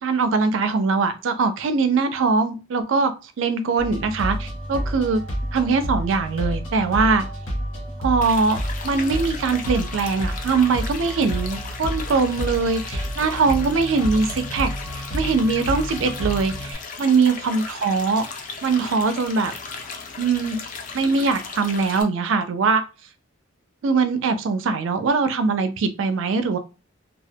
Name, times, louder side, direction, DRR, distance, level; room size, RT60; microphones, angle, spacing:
voice 1, 0.0-3.1 3.4-5.2 5.5-7.3 8.0-8.6 8.8-18.2 18.6-19.5 20.2-20.6 20.9-22.8 23.8-26.6, right 4 dB, 70° right, 0.4 m, -22 dB
sound 1, 3.8-16.7, equal, 75° left, 1.0 m, -30 dB
sound 2, 8.2-22.0, left 4 dB, 40° left, 0.3 m, -36 dB
2.3 x 2.0 x 2.7 m
head